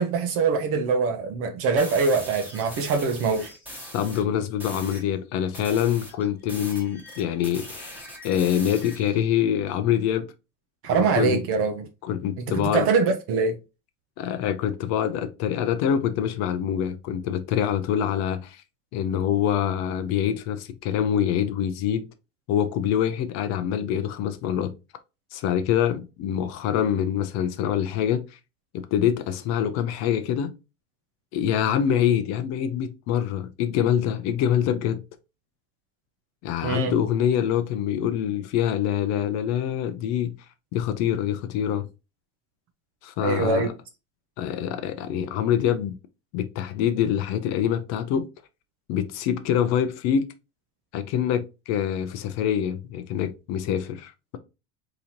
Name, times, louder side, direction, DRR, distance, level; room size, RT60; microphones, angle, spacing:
voice 1, 0.0-3.5 10.8-11.9 12.4-13.6 36.6-36.9 43.2-43.7, right 5 dB, 40° right, 0.6 m, -23 dB
sound 1, 1.8-4.2 4.6-5.1 5.5-9.2, equal, 5° right, 1.3 m, -41 dB
voice 2, 3.9-10.3 10.9-11.4 12.0-12.9 14.2-18.6 18.9-22.1 22.5-24.7 25.3-28.2 28.7-30.5 31.3-35.0 36.4-40.3 40.7-41.9 43.0-43.7 44.4-45.9 46.3-48.3 48.9-50.2 50.9-54.4, left 9 dB, 50° left, 0.6 m, -25 dB
3.9 x 2.8 x 2.9 m
supercardioid pair, 145°, 34 cm